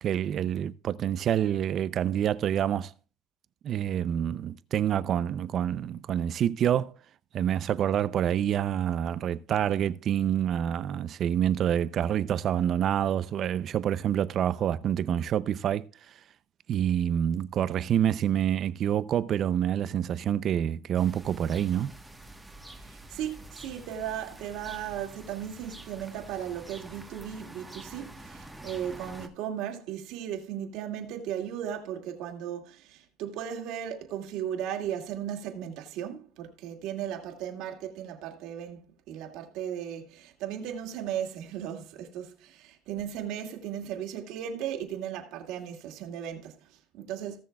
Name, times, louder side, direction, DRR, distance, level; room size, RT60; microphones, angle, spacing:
voice 1, 0.0-2.9 3.6-6.9 7.3-15.8 16.7-21.9, right 10 dB, 40° right, 0.5 m, -27 dB
sound 1, 21.0-29.3, right 1 dB, 5° right, 1.3 m, -47 dB
voice 2, 22.8-47.4, right 9 dB, 65° right, 2.3 m, -36 dB
18.5 x 6.4 x 2.4 m
cardioid pair, 140°, 0 cm